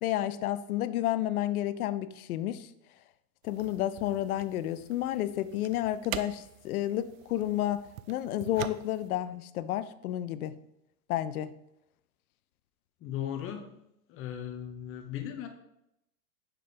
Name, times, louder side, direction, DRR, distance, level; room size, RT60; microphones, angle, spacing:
voice 1, 0.0-2.7 3.4-10.6 11.1-11.5, left 13 dB, 75° left, 14 dB, 0.6 m, -31 dB
sound 1, 3.4-9.1, right 12 dB, 65° right, 0.5 m, -44 dB
voice 2, 13.0-13.7 14.1-15.5, left 10 dB, 30° left, 5 dB, 0.9 m, -37 dB
5.9 x 3.3 x 5.1 m, 0.80 s
hypercardioid pair, 120°, 44 cm